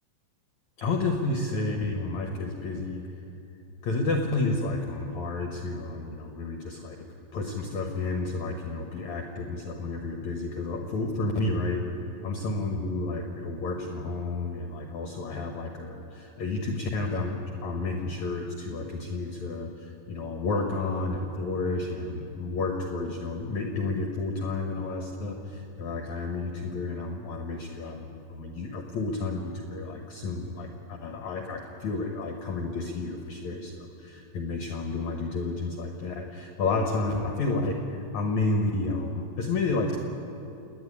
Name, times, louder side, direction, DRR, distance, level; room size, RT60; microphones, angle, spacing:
voice 1, 0.8-3.1 3.8-6.9 7.3-11.9 12.2-40.0, left 3 dB, 75° left, 3 dB, 1.6 m, -31 dB
28.5 x 10.0 x 9.7 m, 2.8 s
omnidirectional pair, 5.2 m